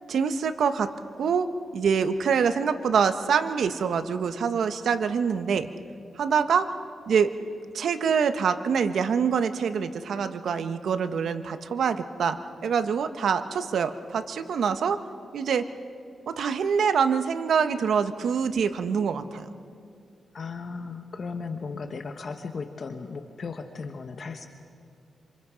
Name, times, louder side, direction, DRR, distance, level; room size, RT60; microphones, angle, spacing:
voice 1, 0.1-0.9 1.2-5.7 6.1-6.7 7.1-7.3 7.7-15.0 15.3-15.7 16.3-19.5, right 6 dB, 75° right, 10 dB, 1.1 m, -25 dB
voice 2, 20.3-24.5, left 4 dB, 50° left, 6 dB, 1.2 m, -36 dB
27.0 x 27.0 x 5.1 m, 2.3 s
cardioid pair, 105°, 0 cm